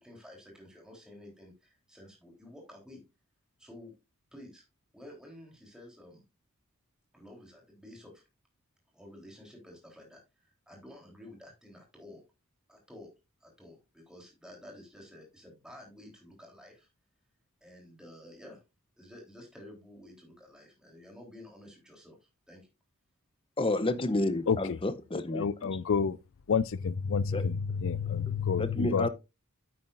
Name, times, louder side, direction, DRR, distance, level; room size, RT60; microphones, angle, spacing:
voice 1, 0.0-3.0 3.6-3.9 4.3-4.6 4.9-6.2 7.1-8.2 8.9-12.2 12.7-13.1 13.4-16.9 17.6-18.6 19.0-22.2 22.5-22.7, left 1 dB, 5° right, 3.6 m, -51 dB
voice 2, 23.6-25.8 27.3-27.5 28.3-29.1, left 1 dB, 25° left, 0.7 m, -31 dB
voice 3, 25.3-26.2 26.5-29.1, left 6 dB, 60° left, 0.4 m, -29 dB
9.6 x 8.5 x 2.5 m
head